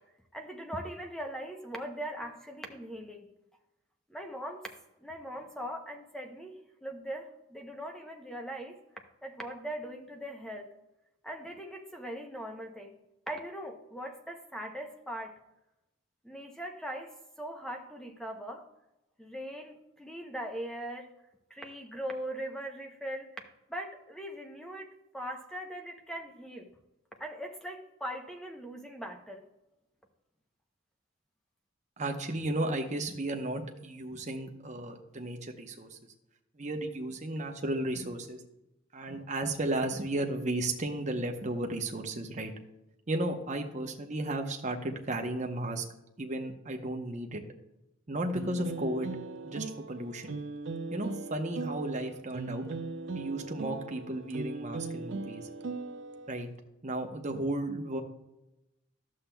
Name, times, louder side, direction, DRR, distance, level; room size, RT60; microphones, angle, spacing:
voice 1, 0.3-3.3 4.1-4.7 5.0-8.8 9.2-10.7 11.2-13.0 13.3-15.4 16.2-18.6 19.2-21.1 21.5-23.3 23.7-24.9 25.1-26.7 27.2-29.4, equal, 5° left, 3 dB, 0.6 m, -40 dB
voice 2, 32.0-36.0 36.5-38.4 38.9-42.5 43.1-45.9 46.2-47.4 48.1-49.1 49.4-50.4 50.9-52.7 53.1-55.5 56.3-56.5 56.8-58.0, right 1 dB, 35° right, 4 dB, 0.8 m, -34 dB
sound 1, 48.4-56.4, right 3 dB, 60° right, 0.5 m, -39 dB
11.5 x 7.4 x 2.2 m, 0.91 s
head